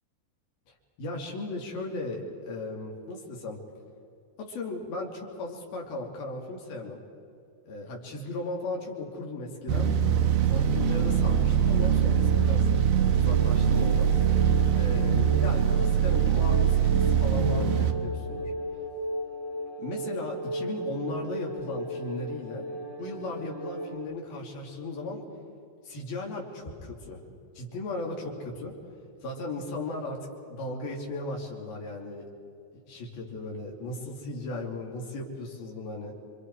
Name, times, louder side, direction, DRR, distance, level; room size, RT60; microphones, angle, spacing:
voice 1, 1.0-3.6 4.4-7.0 7.6-10.0 10.4-12.7 13.1-14.1 14.8-18.5 19.8-22.7 23.0-25.2 25.8-27.2 27.5-28.7 29.2-32.3 32.9-36.1, left 2 dB, 65° left, -1 dB, 4.8 m, -36 dB
sound 1, 9.7-17.9, right 8 dB, 75° right, 3.0 m, -23 dB
sound 2, 10.6-24.0, right 1 dB, 25° right, 3.1 m, -37 dB
30.0 x 25.0 x 4.8 m, 2.5 s
omnidirectional pair, 4.8 m